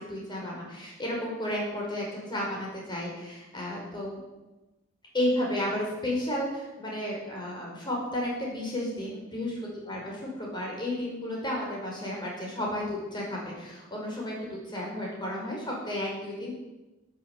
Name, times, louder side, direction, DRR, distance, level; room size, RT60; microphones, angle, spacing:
voice 1, 0.1-4.2 5.1-9.6 9.9-16.5, left 1 dB, 20° left, -3 dB, 5.2 m, -32 dB
14.0 x 8.7 x 7.4 m, 1.1 s
head